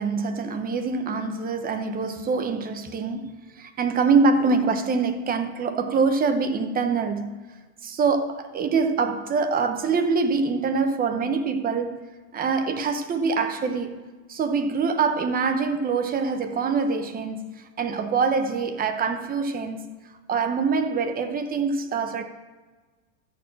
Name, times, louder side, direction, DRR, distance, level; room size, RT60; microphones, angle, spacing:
voice 1, 0.0-7.3 7.8-12.1 12.3-14.0 14.3-19.8 20.3-22.2, right 4 dB, 20° right, 0.8 m, -24 dB
13.5 x 4.7 x 7.5 m
supercardioid pair, 145°, 45 cm